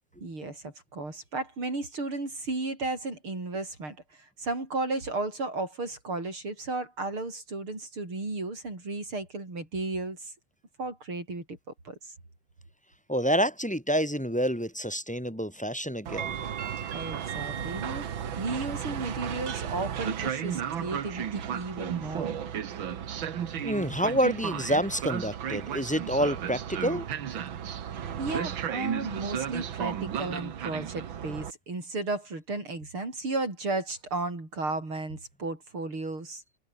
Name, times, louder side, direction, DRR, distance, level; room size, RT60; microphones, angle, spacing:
voice 1, 0.2-10.3 10.8-11.6 11.8-12.1 16.9-22.3 28.2-36.4, right 2 dB, 90° right, 8.1 m, -34 dB
voice 2, 13.1-16.4 23.6-27.1, equal, 5° left, 3.1 m, -28 dB
Train, 16.1-31.5, right 9 dB, 70° right, 2.2 m, -34 dB
omnidirectional pair, 2.3 m